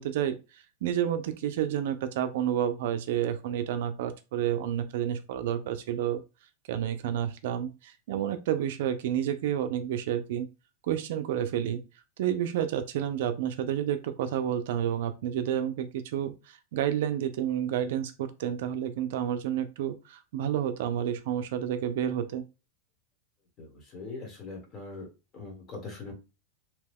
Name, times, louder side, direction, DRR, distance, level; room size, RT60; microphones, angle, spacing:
voice 1, 0.0-6.2 6.7-10.5 10.9-11.8 12.2-22.4, right 10 dB, 65° right, 10 dB, 0.4 m, -30 dB
voice 2, 23.6-25.1 25.3-26.1, left 3 dB, 25° left, 2 dB, 1.2 m, -41 dB
2.8 x 2.2 x 3.4 m, 0.29 s
supercardioid pair, 150°, 0 cm